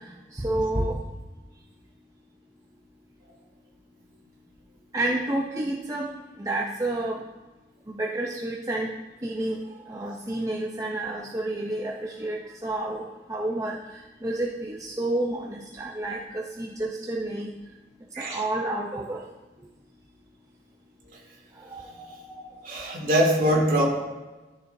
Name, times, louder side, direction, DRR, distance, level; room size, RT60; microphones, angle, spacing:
voice 1, 0.3-0.9 4.9-6.1 6.4-7.2 7.9-8.9 9.2-9.6 9.9-13.0 13.3-13.8 14.2-17.5 18.2-19.2 21.7-22.1 22.4-22.5, right 1 dB, 20° right, -2 dB, 0.6 m, -29 dB
voice 2, 22.6-23.8, equal, 50° right, -2 dB, 2.2 m, -23 dB
13.5 x 6.5 x 2.7 m, 1.2 s
head